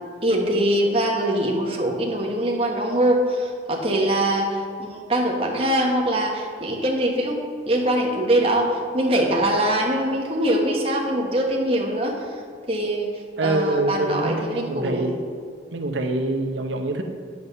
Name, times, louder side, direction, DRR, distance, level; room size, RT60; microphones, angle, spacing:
voice 1, 0.2-12.3 12.7-13.1 13.4-15.1, right 1 dB, 30° right, 0 dB, 1.3 m, -23 dB
voice 2, 13.4-15.2 15.7-17.0, right 2 dB, 85° right, 4 dB, 0.8 m, -25 dB
9.5 x 7.7 x 5.4 m, 2.2 s
head